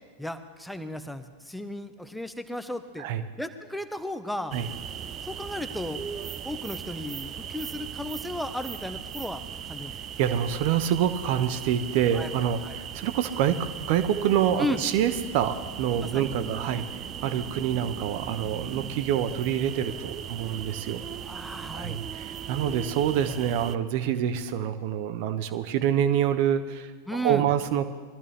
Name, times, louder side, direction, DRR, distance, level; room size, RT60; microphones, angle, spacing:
voice 1, 0.2-3.1 3.4-4.6 5.2-6.0 6.4-9.9 12.1-12.3 12.6-12.8 14.6-14.8 16.0-16.3 16.6-16.8 21.2-22.0 27.1-27.5, left 1 dB, ahead, 9 dB, 0.9 m, -35 dB
sound 1, 4.5-23.8, right 8 dB, 30° right, 0.6 m, -38 dB
voice 2, 10.2-16.8 17.2-21.0 21.7-27.9, right 9 dB, 45° right, 11 dB, 1.1 m, -26 dB
22.0 x 13.5 x 3.3 m, 1.5 s
figure-of-eight pair, 90°, 0 cm